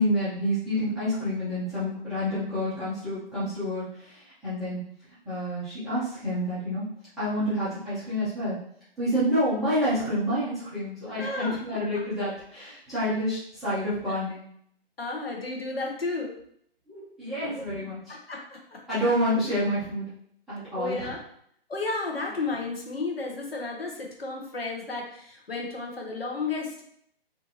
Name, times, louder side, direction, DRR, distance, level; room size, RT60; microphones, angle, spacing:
voice 1, 0.0-4.8 5.2-6.8 7.2-8.6 9.0-14.4 16.9-18.0 18.9-20.0 20.5-21.1, equal, ahead, -15 dB, 0.5 m, -28 dB
voice 2, 11.2-12.0 15.0-16.3 17.5-17.6 18.1-18.8 20.8-21.2 21.7-26.8, left 3 dB, 75° left, 0 dB, 0.8 m, -33 dB
2.6 x 2.5 x 2.6 m, 0.67 s
figure-of-eight pair, 125°, 30 cm